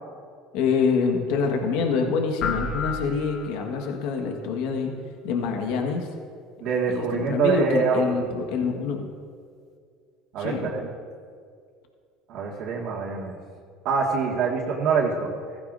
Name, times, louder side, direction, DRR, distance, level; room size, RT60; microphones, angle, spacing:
voice 1, 0.5-4.9 5.2-6.1 6.9-9.1 10.4-10.7, left 5 dB, 70° left, 3 dB, 1.5 m, -26 dB
sound 1, 2.4-4.0, left 4 dB, 55° left, 1.0 m, -31 dB
voice 2, 6.6-8.2 10.3-10.9 12.3-13.4 13.8-15.3, right 5 dB, 60° right, -5 dB, 2.0 m, -25 dB
15.5 x 14.5 x 2.6 m, 2.1 s
supercardioid pair, 90°, 0 cm